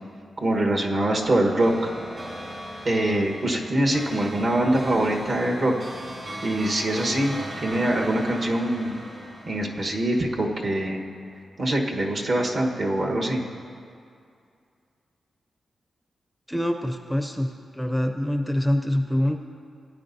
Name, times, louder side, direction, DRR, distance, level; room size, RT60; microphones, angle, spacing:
voice 1, 0.4-1.7 2.8-5.7 6.4-8.9 9.5-11.0 11.6-13.4, right 1 dB, 55° right, 0 dB, 1.2 m, -24 dB
sound 1, 1.2-10.9, right 1 dB, 40° right, 1.8 m, -38 dB
voice 2, 16.5-17.5 17.7-19.4, left 1 dB, ahead, 5 dB, 0.5 m, -25 dB
17.0 x 9.8 x 2.7 m, 2.3 s
cardioid pair, 90°, 0 cm